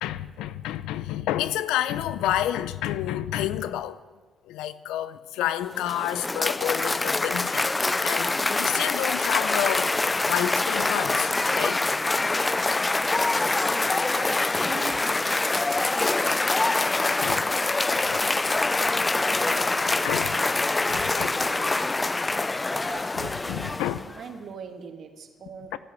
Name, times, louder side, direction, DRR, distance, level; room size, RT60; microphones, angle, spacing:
voice 1, 0.0-4.0 4.5-7.7 8.0-11.8 17.2-17.4 17.9-18.3 18.9-19.0 20.0-20.4 20.9-21.3 23.2-24.0 25.7-25.8, left 12 dB, 80° left, 0.7 m, -30 dB
Cheering / Applause, 5.6-24.2, left 2 dB, 25° left, 0.4 m, -25 dB
voice 2, 13.7-17.4 17.8-18.3 18.6-22.1 22.6-23.8 24.2-25.8, right 6 dB, 60° right, 2.0 m, -44 dB
14.0 x 11.0 x 9.0 m
supercardioid pair, 60°, 0 cm